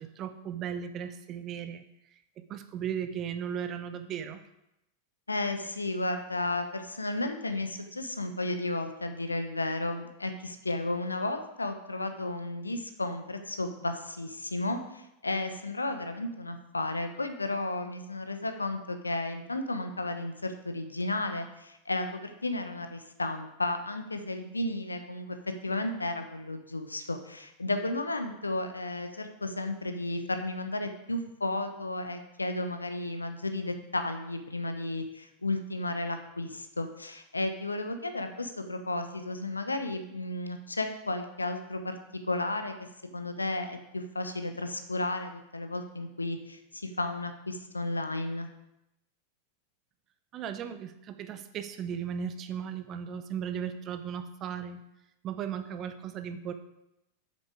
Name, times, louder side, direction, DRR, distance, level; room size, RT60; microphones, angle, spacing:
voice 1, 0.0-1.8 2.1-4.4 50.3-54.8 55.2-56.5, right 8 dB, 35° right, 9 dB, 0.8 m, -36 dB
voice 2, 5.3-25.4 25.6-42.0 42.3-42.7 43.1-48.5, left 2 dB, 80° left, 7 dB, 0.9 m, -33 dB
8.1 x 6.9 x 4.9 m, 0.87 s
figure-of-eight pair, 90°, 0 cm